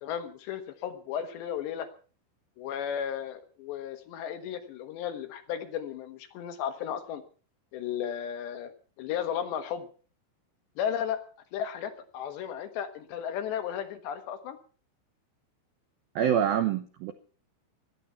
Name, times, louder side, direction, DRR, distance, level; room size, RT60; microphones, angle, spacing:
voice 1, 0.0-1.9 2.6-7.2 7.7-8.7 9.0-9.9 10.8-11.2 11.5-14.6, left 9 dB, 70° left, 8 dB, 3.3 m, -34 dB
voice 2, 16.2-17.1, right 9 dB, 80° right, 9 dB, 2.1 m, -26 dB
18.0 x 13.0 x 5.7 m, 0.41 s
omnidirectional pair, 5.7 m